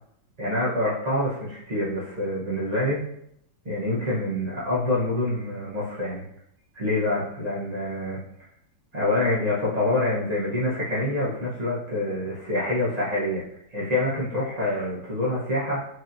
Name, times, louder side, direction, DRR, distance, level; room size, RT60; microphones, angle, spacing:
voice 1, 0.4-3.0 3.6-6.2 6.7-8.2 8.9-13.4 13.7-15.8, left 1 dB, 65° right, -8 dB, 0.4 m, -26 dB
4.6 x 2.8 x 2.5 m, 0.72 s
omnidirectional pair, 2.1 m